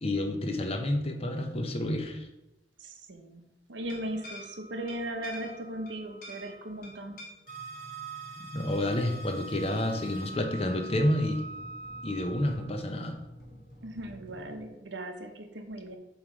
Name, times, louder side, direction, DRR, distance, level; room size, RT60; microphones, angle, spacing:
voice 1, 0.0-2.3 8.4-11.4 12.0-13.2, left 1 dB, 35° left, 5 dB, 0.7 m, -29 dB
voice 2, 2.8-7.2 13.8-16.0, right 1 dB, 80° right, 5 dB, 0.9 m, -38 dB
sound 1, 3.8-14.7, left 1 dB, 50° left, 1.7 m, -49 dB
Wind instrument woodwind instrument, 7.5-12.7, right 3 dB, 40° right, 0.6 m, -43 dB
7.2 x 3.2 x 5.0 m, 0.94 s
head